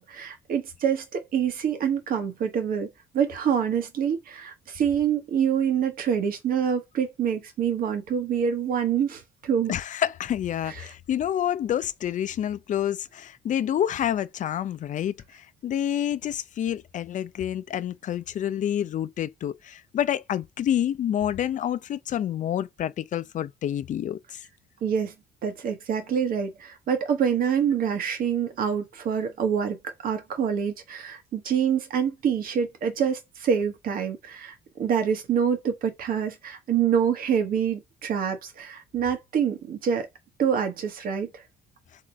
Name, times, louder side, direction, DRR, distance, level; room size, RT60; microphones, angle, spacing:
voice 1, 0.0-2.9 3.1-9.7 10.6-10.9 24.8-25.1 25.4-29.8 30.0-40.1 40.4-41.3, right 8 dB, 60° right, 1.5 m, -26 dB
voice 2, 9.7-24.4, left 10 dB, 50° left, 0.6 m, -28 dB
3.9 x 3.8 x 3.5 m
cardioid pair, 110°, 17 cm